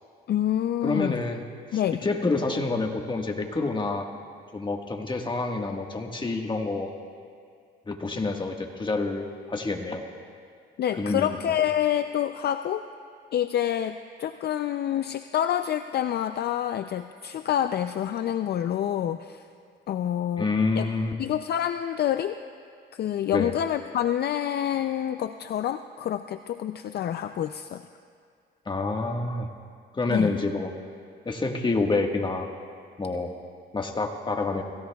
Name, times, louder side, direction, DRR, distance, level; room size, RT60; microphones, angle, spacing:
voice 1, 0.3-1.1 1.7-2.0 10.8-12.9 13.3-19.5 19.9-20.5 20.8-20.9 21.2-22.4 22.9-27.8 30.1-30.3, left 10 dB, 55° left, 9 dB, 0.4 m, -27 dB
voice 2, 0.8-1.4 1.7-4.1 4.5-6.9 7.9-10.0 11.0-11.4 20.4-21.1 23.3-23.5 28.6-29.5 29.9-30.7 31.2-32.5 33.0-33.3 33.7-34.6, left 3 dB, 25° left, 2 dB, 1.5 m, -27 dB
28.5 x 16.0 x 2.3 m, 2.2 s
cardioid pair, 90°, 20 cm